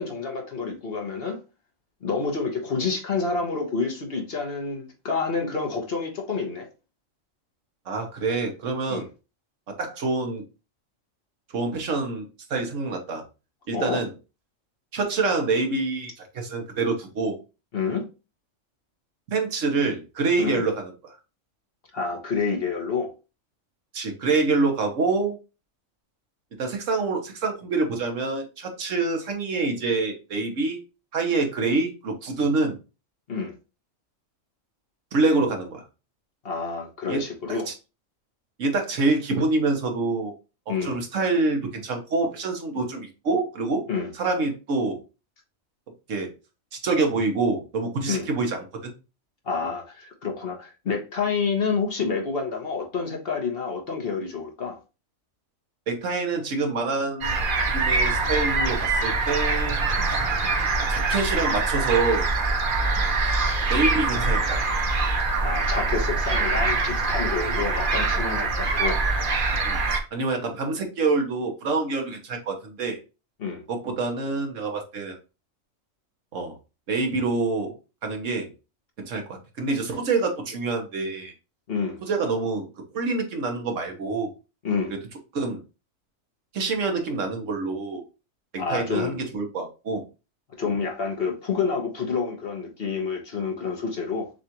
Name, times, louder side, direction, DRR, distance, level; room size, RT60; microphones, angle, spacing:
voice 1, 0.0-1.4 2.0-6.7 8.9-9.1 13.7-14.0 17.7-18.0 20.4-20.6 21.9-23.1 33.3-33.5 36.4-37.7 40.7-41.0 43.9-44.1 48.1-48.3 49.4-54.8 65.4-69.0 73.4-73.6 81.7-82.0 84.6-84.9 88.6-89.2 90.6-94.3, left 5 dB, 50° left, 1.1 m, -28 dB
voice 2, 7.9-9.1 9.7-10.4 11.5-13.2 13.7-14.1 14.9-17.4 19.3-21.2 23.9-25.4 26.6-30.8 31.1-32.8 35.1-35.8 37.1-37.2 37.5-37.6 38.6-40.3 40.8-43.8 44.1-45.0 46.1-46.3 46.8-48.9 55.9-57.3 57.7-60.2 60.9-62.3 63.7-64.6 69.6-73.0 73.7-75.2 76.3-76.5 76.9-77.7 78.0-78.5 79.0-81.3 82.0-82.7 82.9-84.3 85.3-85.6 86.5-88.0 88.5-90.0 90.6-90.7, right 3 dB, 70° right, 1.3 m, -26 dB
sound 1, 57.2-70.0, right 3 dB, 45° right, 0.9 m, -24 dB
6.5 x 2.4 x 2.9 m
omnidirectional pair, 1.4 m